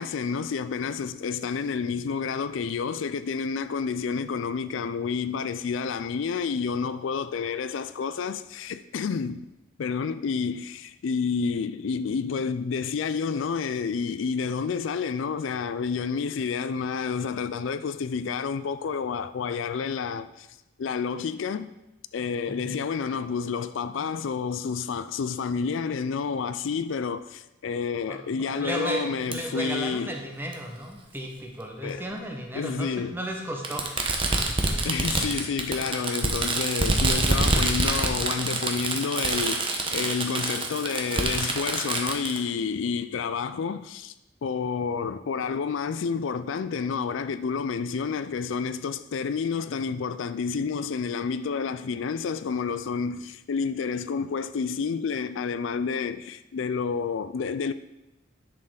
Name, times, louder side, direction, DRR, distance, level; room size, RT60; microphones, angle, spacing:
voice 1, 0.0-9.5 9.8-20.5 20.8-21.7 22.1-30.1 31.8-32.1 32.5-33.2 34.8-44.1 44.4-57.7, left 5 dB, 75° left, 0.4 m, -29 dB
voice 2, 28.1-33.9, right 1 dB, 10° right, 1.1 m, -34 dB
Fireworks, 29.3-29.4 30.5-30.6 31.9-32.0 33.6-42.4, right 2 dB, 25° right, 0.9 m, -26 dB
11.0 x 6.5 x 3.9 m
head